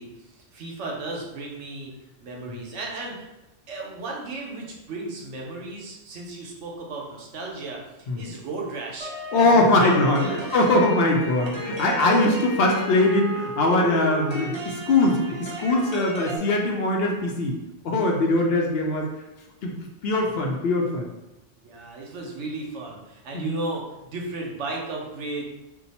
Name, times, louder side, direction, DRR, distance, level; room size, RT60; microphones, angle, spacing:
voice 1, 0.0-1.9 2.2-3.3 3.7-10.5 21.6-25.4, right 2 dB, 75° right, -1 dB, 1.0 m, -35 dB
sound 1, 9.0-16.4, right 1 dB, 45° right, 0.3 m, -34 dB
voice 2, 9.3-17.5 17.8-19.1 19.6-21.1 23.3-23.5, left 2 dB, 65° left, 1 dB, 0.7 m, -21 dB
2.7 x 2.2 x 4.1 m, 0.98 s
omnidirectional pair, 1.2 m